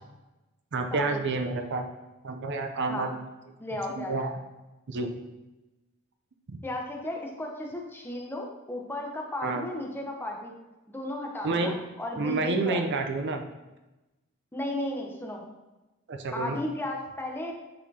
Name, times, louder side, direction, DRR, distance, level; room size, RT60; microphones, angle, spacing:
voice 1, 0.7-1.9 2.2-3.2 4.0-4.3 4.9-5.1 6.5-6.6 9.4-9.6 11.4-11.8 12.2-13.5 16.1-16.6, right 3 dB, 55° right, 5 dB, 0.5 m, -29 dB
voice 2, 3.6-4.1 6.6-10.5 10.9-12.8 14.5-15.4 16.3-17.5, left 1 dB, 10° left, 0 dB, 0.8 m, -34 dB
8.4 x 4.2 x 2.8 m, 1.1 s
head